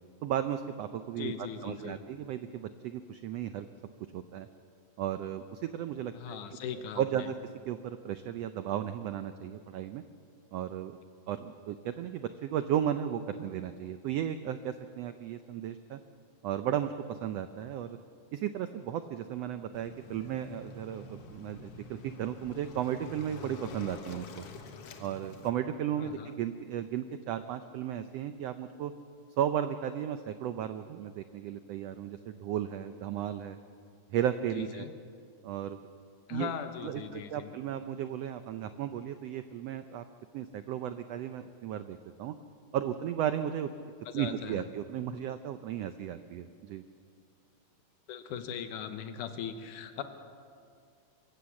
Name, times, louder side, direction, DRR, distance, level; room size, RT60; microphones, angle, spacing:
voice 1, 0.2-1.3 1.6-3.7 4.1-4.5 5.0-6.4 6.7-7.3 7.7-10.0 10.5-11.0 11.3-16.0 16.4-18.0 18.3-24.4 25.0-28.9 29.4-33.6 34.1-34.9 35.4-35.8 36.3-36.5 36.8-40.0 40.3-42.3 42.7-46.8, right 10 dB, 85° right, 10 dB, 1.4 m, -35 dB
voice 2, 1.2-2.0 6.1-7.3 26.0-26.3 34.5-34.9 36.3-37.5 44.1-44.6 48.1-50.0, left 8 dB, 75° left, 8 dB, 2.6 m, -39 dB
Waves surf, 19.7-25.5, left 3 dB, 55° left, 2.0 m, -47 dB
24.0 x 15.0 x 7.1 m, 2.3 s
omnidirectional pair, 3.6 m